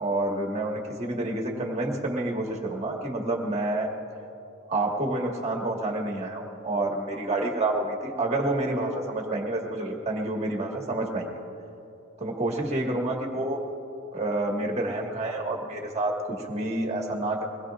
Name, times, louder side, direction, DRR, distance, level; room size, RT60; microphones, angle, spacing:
voice 1, 0.0-3.9 4.7-11.3 12.2-13.6 14.1-17.4, right 2 dB, 30° right, 0 dB, 1.6 m, -28 dB
22.5 x 20.0 x 2.5 m, 2.8 s
head